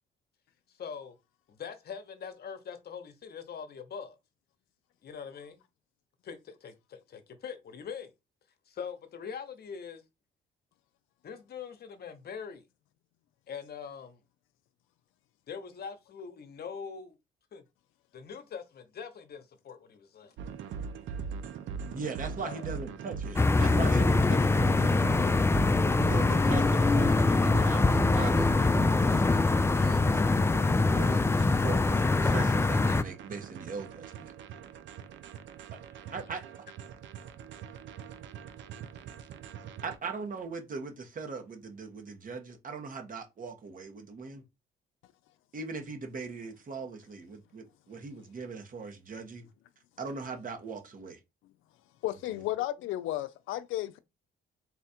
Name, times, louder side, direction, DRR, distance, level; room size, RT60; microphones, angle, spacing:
voice 1, 0.8-1.1 1.6-4.2 5.0-5.6 6.2-8.1 8.8-10.0 11.2-12.6 13.5-14.2 15.5-17.1 17.5-17.6 18.1-20.3 22.4-22.6, left 6 dB, 55° left, 0.9 m, -42 dB
sound 1, 20.4-40.0, right 6 dB, 70° right, 0.6 m, -41 dB
voice 2, 21.8-25.2 26.0-29.4 29.8-30.1 30.8-34.3 36.1-36.4 39.8-44.4 45.5-49.5 50.0-51.2 52.3-52.4, right 4 dB, 45° right, 1.2 m, -40 dB
sound 2, 23.4-33.0, left 3 dB, 15° left, 0.3 m, -24 dB
voice 3, 52.0-54.0, left 14 dB, 90° left, 0.5 m, -33 dB
4.1 x 2.4 x 4.2 m
cardioid pair, 90°, 20 cm